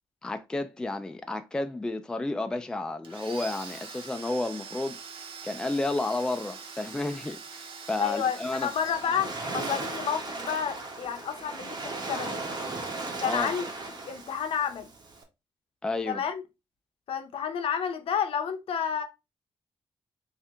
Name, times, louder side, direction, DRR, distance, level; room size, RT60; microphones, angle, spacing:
voice 1, 0.2-5.0 5.4-8.7 13.2-13.5 15.8-16.2, left 2 dB, 10° left, 0.3 m, -31 dB
Domestic sounds home sounds, 3.0-9.8, right 5 dB, 65° right, 0.8 m, -44 dB
voice 2, 8.0-12.4 13.2-13.7 14.1-14.9 16.1-16.4 17.1-19.0, left 7 dB, 75° left, 0.7 m, -30 dB
Waves surf, 8.4-15.2, right 3 dB, 45° right, 1.1 m, -36 dB
3.2 x 2.9 x 3.5 m
wide cardioid pair, 135°, 10 cm